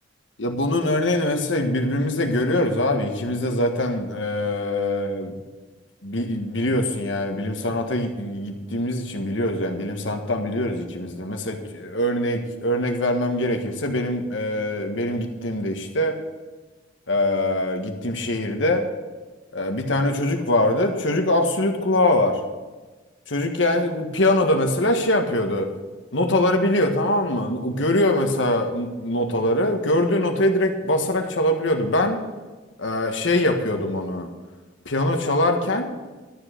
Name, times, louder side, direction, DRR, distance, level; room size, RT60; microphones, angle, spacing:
voice 1, 0.4-5.3 6.0-16.2 17.1-18.8 19.5-22.4 23.3-25.7 26.1-32.2 32.8-34.3 34.8-35.9, left 1 dB, 75° left, 4 dB, 1.6 m, -23 dB
12.5 x 7.7 x 6.6 m, 1.2 s
head